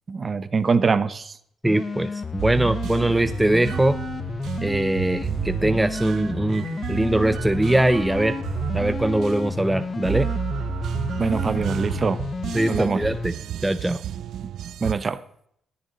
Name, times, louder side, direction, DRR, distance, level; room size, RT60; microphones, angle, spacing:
voice 1, 0.1-1.4 3.0-3.1 11.2-12.2 12.7-13.0 14.8-15.2, right 5 dB, 35° right, 14 dB, 0.9 m, -23 dB
sound 1, 1.6-13.3, left 4 dB, 35° left, 0.5 m, -32 dB
voice 2, 1.6-4.0 4.6-8.4 8.7-10.3 12.5-13.3 13.6-14.0, right 1 dB, 10° right, 11 dB, 0.5 m, -22 dB
sound 2, 2.4-14.9, right 10 dB, 70° right, 0.4 m, -31 dB
20.0 x 7.1 x 3.9 m, 0.68 s
cardioid pair, 90°, 0 cm